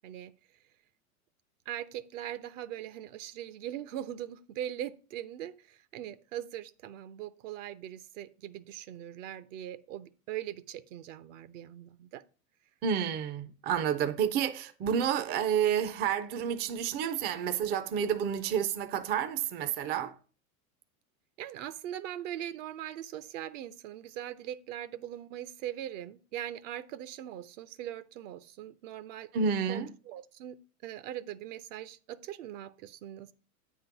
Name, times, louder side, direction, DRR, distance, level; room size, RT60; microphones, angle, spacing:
voice 1, 1.7-12.2 21.4-30.6 30.8-33.3, right 11 dB, 60° right, 0.7 m, -41 dB
voice 2, 12.8-20.1 29.3-29.9, right 8 dB, 25° right, 0.4 m, -30 dB
8.6 x 3.7 x 5.8 m
hypercardioid pair, 105°, 43 cm